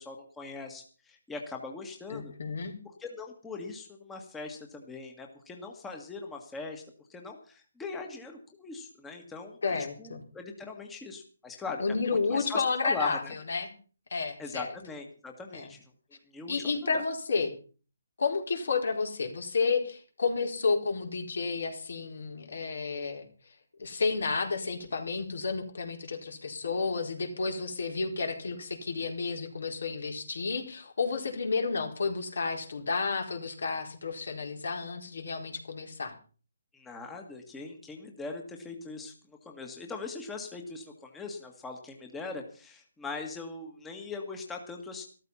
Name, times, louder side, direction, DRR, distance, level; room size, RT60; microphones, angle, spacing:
voice 1, 0.0-2.3 3.0-6.8 7.1-13.3 14.4-15.8 16.3-17.0 36.7-45.1, left 4 dB, 5° left, 3 dB, 1.7 m, -41 dB
voice 2, 2.1-2.7 9.6-10.2 11.8-13.2 13.5-13.7 14.1-14.7 15.5-15.7 16.5-17.5 18.2-23.3 23.8-36.1, left 4 dB, 70° left, 4 dB, 4.5 m, -31 dB
13.5 x 13.5 x 5.6 m, 0.40 s
hypercardioid pair, 160°, 0 cm